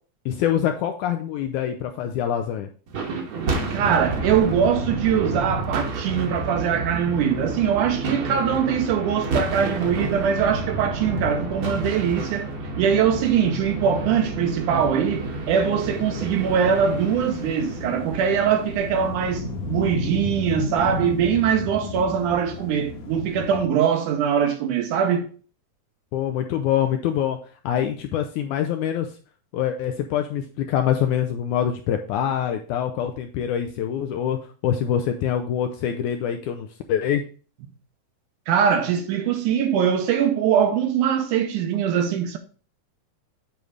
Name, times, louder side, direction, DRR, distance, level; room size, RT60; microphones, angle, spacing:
voice 1, 0.3-2.7 26.1-27.4 27.6-29.1 29.5-37.2, left 9 dB, 80° left, 1.8 m, -25 dB
sound 1, 2.9-19.3, right 2 dB, 60° right, 1.5 m, -30 dB
voice 2, 3.7-12.5 12.8-25.3 38.5-42.4, right 8 dB, 75° right, 2.0 m, -22 dB
sound 2, 15.8-23.7, left 2 dB, 60° left, 1.9 m, -33 dB
9.2 x 3.2 x 5.0 m
omnidirectional pair, 4.0 m